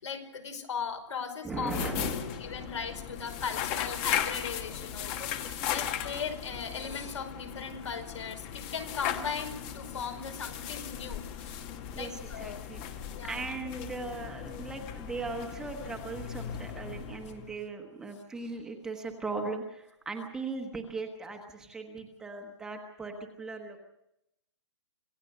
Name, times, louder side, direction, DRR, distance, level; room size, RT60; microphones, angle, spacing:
voice 1, 0.0-1.7 2.4-11.6 12.0-12.6 13.1-13.4, left 6 dB, 85° left, 5 dB, 5.3 m, -38 dB
voice 2, 1.4-2.3 12.0-23.8, right 3 dB, 5° right, 2 dB, 1.2 m, -38 dB
sound 1, 1.5-17.6, left 9 dB, 15° left, 1.0 m, -37 dB
26.5 x 16.5 x 6.8 m, 0.84 s
hypercardioid pair, 175°, 15 cm